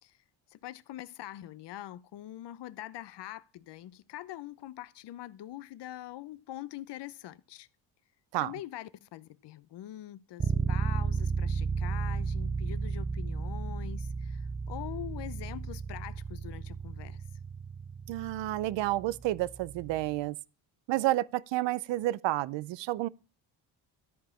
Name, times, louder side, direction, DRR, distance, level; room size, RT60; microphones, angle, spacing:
voice 1, 0.5-7.7 8.4-17.2, left 13 dB, 65° left, 0.8 m, -44 dB
sound 1, 10.4-20.1, right 5 dB, 20° right, 0.5 m, -34 dB
voice 2, 18.1-20.4 20.9-23.1, right 16 dB, 70° right, 0.6 m, -30 dB
13.0 x 5.0 x 5.6 m
cardioid pair, 90°, 46 cm